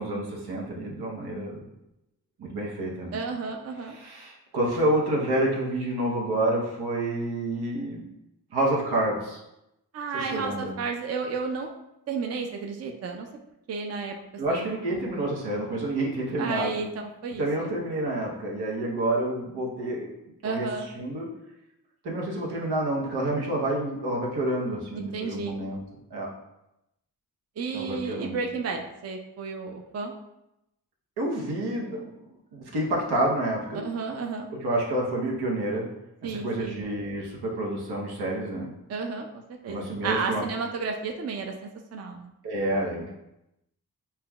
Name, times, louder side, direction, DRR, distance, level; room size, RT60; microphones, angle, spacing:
voice 1, 0.0-1.6 2.4-3.2 3.9-8.1 8.5-9.4 10.3-10.7 14.4-16.8 17.4-20.1 20.4-20.7 21.0-21.3 22.0-25.8 26.1-26.3 27.7-28.4 31.2-33.8 34.6-35.9 36.4-38.7 39.7-40.4 42.4-43.1, right 1 dB, 85° right, -2 dB, 0.9 m, -28 dB
voice 2, 3.1-4.0 9.9-11.7 12.1-13.3 13.7-14.1 14.5-14.6 16.4-16.9 17.2-17.7 20.4-20.9 24.9-25.6 27.6-30.1 33.8-34.5 36.2-36.8 38.9-42.3, right 4 dB, 40° right, 3 dB, 0.5 m, -32 dB
5.6 x 2.2 x 2.3 m, 0.88 s
cardioid pair, 60°, 38 cm